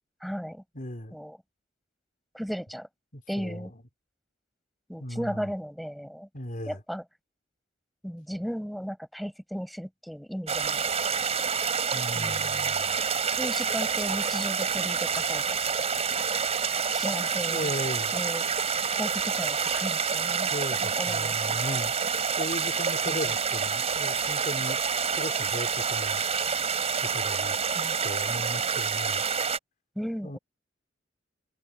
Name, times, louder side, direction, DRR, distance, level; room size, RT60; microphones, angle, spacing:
voice 1, 0.2-0.6 1.1-1.4 2.3-2.9 3.3-3.7 4.9-6.3 6.7-7.0 8.0-10.8 12.1-12.7 13.4-15.4 16.9-17.7 18.1-18.5 18.9-20.5 20.8-21.8 23.1-23.2 27.7-28.0 29.9-30.4, equal, ahead, 6.9 m, -35 dB
voice 2, 0.7-1.2 3.1-3.8 5.0-5.5 6.3-6.8 11.9-13.0 17.3-18.2 20.5-24.8 25.1-26.2 27.0-27.6 28.0-29.2 30.2-30.4, left 1 dB, 45° left, 3.5 m, -37 dB
sound 1, 10.5-29.6, right 6 dB, 35° right, 3.6 m, -28 dB
head